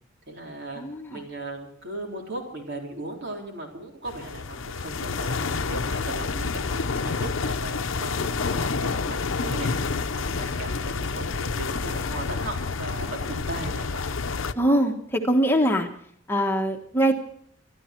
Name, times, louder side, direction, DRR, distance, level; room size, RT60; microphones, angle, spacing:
voice 1, 0.3-0.8 1.1-14.0, right 2 dB, 60° right, 1 dB, 3.9 m, -37 dB
voice 2, 0.8-1.2 14.6-15.9 16.3-17.1, right 1 dB, 10° left, 3 dB, 1.3 m, -22 dB
sound 1, 4.1-14.5, left 4 dB, 80° left, 0.8 m, -29 dB
25.0 x 12.5 x 4.5 m, 0.63 s
head